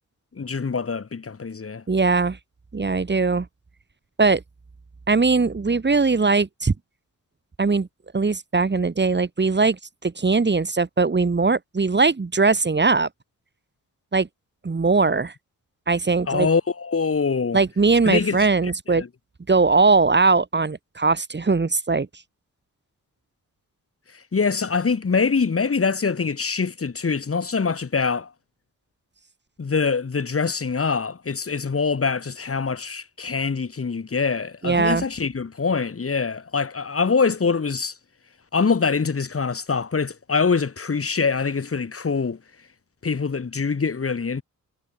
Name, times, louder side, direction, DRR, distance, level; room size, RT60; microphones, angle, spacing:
voice 1, 0.3-1.8 16.3-17.6 18.1-19.1 24.1-28.3 29.6-37.9 38.5-42.4 43.0-44.4, left 5 dB, 45° left, 7.2 m, -24 dB
voice 2, 1.9-2.4 2.7-3.5 4.2-4.4 5.1-6.7 7.6-7.9 8.1-13.1 14.1-14.3 14.6-15.3 15.9-16.5 17.5-19.0 19.5-22.1 34.6-35.0, right 4 dB, 35° right, 3.9 m, -20 dB
cardioid pair, 95°, 33 cm